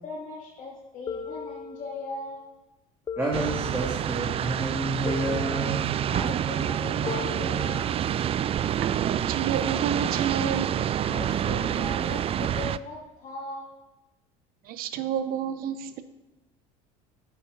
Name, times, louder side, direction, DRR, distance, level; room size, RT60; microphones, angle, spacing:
voice 1, 0.0-2.4 6.1-8.0 11.0-13.7, left 3 dB, 45° left, -6 dB, 2.7 m, -38 dB
sound 1, 1.1-2.2 3.1-4.2 5.1-6.2 7.1-8.2, left 5 dB, 25° left, 0.5 m, -38 dB
voice 2, 3.2-5.9, right 1 dB, 15° right, -2 dB, 2.1 m, -30 dB
sound 2, 3.3-12.8, right 10 dB, 35° right, 0.4 m, -27 dB
voice 3, 8.8-10.7 14.6-16.0, right 8 dB, 60° right, 12 dB, 0.9 m, -30 dB
9.0 x 8.2 x 5.3 m, 1.0 s
supercardioid pair, 85°, 17 cm